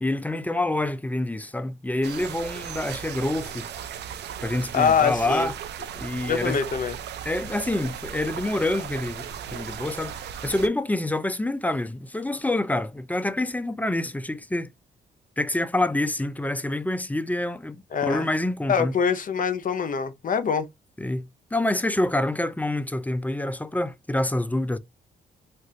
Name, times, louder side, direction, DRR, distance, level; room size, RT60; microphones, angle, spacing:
voice 1, 0.0-3.7 4.4-5.5 6.0-6.6 7.2-14.7 15.4-18.9 21.0-24.8, left 1 dB, 10° left, 0.4 m, -27 dB
sound 1, 2.0-10.7, right 8 dB, 70° right, 0.5 m, -36 dB
voice 2, 4.7-5.5 6.3-6.9 17.9-18.3 18.7-20.7, left 6 dB, 50° left, 0.7 m, -24 dB
3.2 x 2.5 x 2.7 m
supercardioid pair, 65°, 18 cm